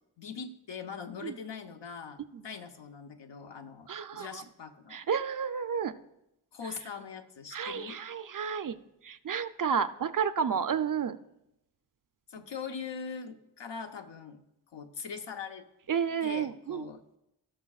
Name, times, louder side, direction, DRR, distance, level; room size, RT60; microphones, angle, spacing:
voice 1, 0.2-5.0 6.5-8.0 12.3-14.4 14.7-15.6 16.2-17.0, left 6 dB, 85° left, 5 dB, 0.8 m, -42 dB
voice 2, 3.9-4.4 4.9-5.9 7.5-8.8 9.0-11.2 15.9-16.9, right 7 dB, 50° right, 12 dB, 0.5 m, -31 dB
17.5 x 6.1 x 2.4 m, 0.87 s
cardioid pair, 50°, 42 cm